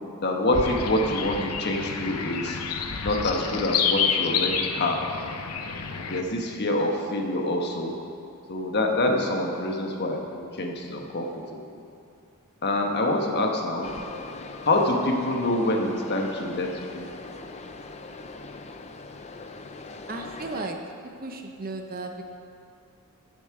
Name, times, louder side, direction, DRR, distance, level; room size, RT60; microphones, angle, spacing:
voice 1, 0.2-2.6 3.0-5.0 5.9-7.9 8.5-11.8 12.6-13.9 14.6-17.1, left 1 dB, 50° left, 2 dB, 1.2 m, -26 dB
sound 1, 0.5-6.2, left 6 dB, 90° left, 0.7 m, -29 dB
sound 2, 13.8-20.7, left 3 dB, 30° left, 0.6 m, -41 dB
voice 2, 20.1-20.9 21.2-22.2, right 2 dB, 40° right, 4 dB, 0.8 m, -34 dB
14.0 x 7.4 x 4.8 m, 2.5 s
head